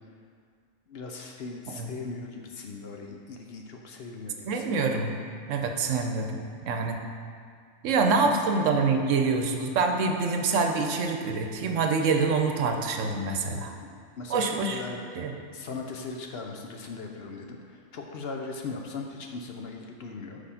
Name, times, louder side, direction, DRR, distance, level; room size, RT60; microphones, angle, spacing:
voice 1, 0.9-4.7 7.9-8.3 13.8-20.4, left 4 dB, 60° left, 2 dB, 0.8 m, -39 dB
voice 2, 4.4-5.1 5.5-7.0 7.8-13.7 14.3-14.8 15.2-15.3, right 4 dB, 75° right, 4 dB, 1.0 m, -26 dB
6.6 x 4.9 x 5.6 m, 2.2 s
omnidirectional pair, 1.3 m